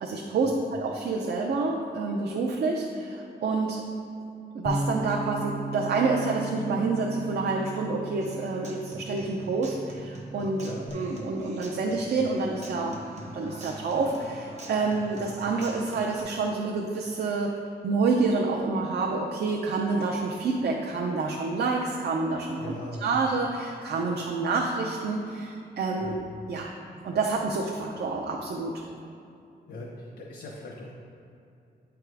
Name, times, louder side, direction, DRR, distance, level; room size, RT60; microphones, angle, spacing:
voice 1, 0.0-3.8 4.5-13.0 13.3-17.6 17.8-22.6 23.0-26.1 26.5-26.7 27.0-28.8, right 3 dB, 70° right, -1 dB, 0.6 m, -28 dB
Bass guitar, 4.7-10.9, right 2 dB, 25° left, 0.5 m, -36 dB
Human voice / Acoustic guitar, 8.2-16.2, right 1 dB, 40° right, 0.9 m, -44 dB
voice 2, 22.6-23.1 25.9-26.2 29.7-30.9, left 2 dB, 85° left, -4 dB, 1.0 m, -40 dB
8.6 x 3.6 x 4.7 m, 2.6 s
wide cardioid pair, 165°, 17 cm